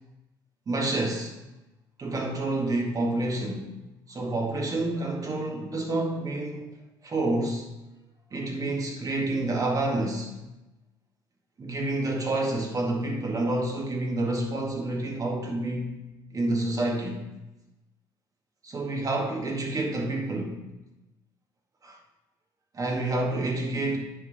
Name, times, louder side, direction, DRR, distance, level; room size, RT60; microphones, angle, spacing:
voice 1, 0.7-1.4 2.0-3.7 4.1-6.7 7.0-7.7 8.3-10.4 11.6-16.1 16.3-17.3 18.6-20.6 21.8-22.0 22.7-24.0, right 2 dB, 35° right, -1 dB, 1.9 m, -28 dB
10.0 x 3.8 x 3.5 m, 0.98 s
supercardioid pair, 75°, 10 cm